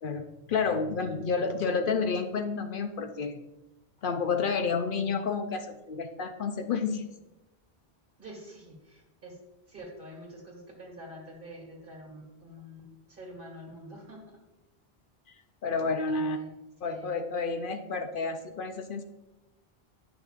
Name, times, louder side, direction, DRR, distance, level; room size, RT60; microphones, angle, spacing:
voice 1, 0.0-3.4 4.0-7.1 15.3-15.4 15.6-16.4 16.8-19.0, left 4 dB, 65° left, 7 dB, 0.7 m, -30 dB
voice 2, 8.2-9.4 9.7-14.2 16.1-16.5 16.8-17.1, equal, 60° right, -1 dB, 2.1 m, -46 dB
10.5 x 6.0 x 2.5 m, 0.99 s
omnidirectional pair, 1.0 m